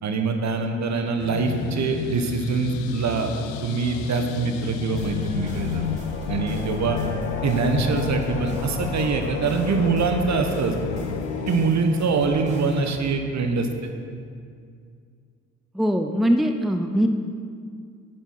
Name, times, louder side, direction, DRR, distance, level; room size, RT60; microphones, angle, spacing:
voice 1, 0.0-3.3 3.6-5.8 6.3-7.0 7.4-10.7 11.5-13.9, right 4 dB, 45° right, 5 dB, 1.4 m, -24 dB
sound 1, 1.2-11.7, left 9 dB, 80° left, 0.6 m, -31 dB
sound 2, 5.0-13.0, equal, 20° right, 2.9 m, -36 dB
voice 2, 15.7-17.1, equal, ahead, 6 dB, 0.7 m, -21 dB
10.0 x 9.2 x 4.9 m, 2.3 s
hypercardioid pair, 50°, 37 cm